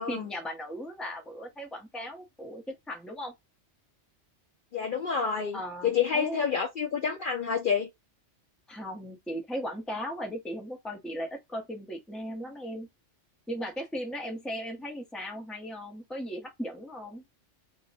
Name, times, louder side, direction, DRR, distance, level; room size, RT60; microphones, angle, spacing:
voice 1, 0.0-3.3 5.5-6.4 8.7-12.9 13.5-17.2, equal, ahead, 0.7 m, -37 dB
voice 2, 4.7-7.9, left 6 dB, 55° left, 0.6 m, -28 dB
2.7 x 2.1 x 4.0 m
omnidirectional pair, 1.2 m